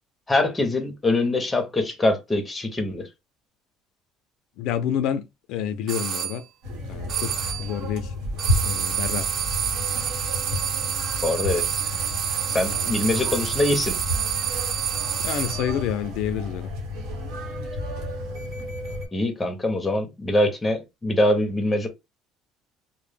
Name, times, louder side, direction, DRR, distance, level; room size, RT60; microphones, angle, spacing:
voice 1, 0.3-3.1 11.2-11.8 12.5-13.9 19.1-21.9, left 1 dB, 10° left, 0.5 m, -23 dB
voice 2, 4.6-5.2 5.5-6.4 6.9-8.1 8.6-9.3 12.7-12.9 15.2-16.7, left 9 dB, 70° left, 0.3 m, -28 dB
sound 1, 5.9-6.4 7.1-7.7 8.4-15.8, right 9 dB, 45° right, 0.3 m, -28 dB
sound 2, 6.6-19.1, left 1 dB, 85° right, 1.1 m, -32 dB
2.0 x 2.0 x 3.2 m
cardioid pair, 165°, 0 cm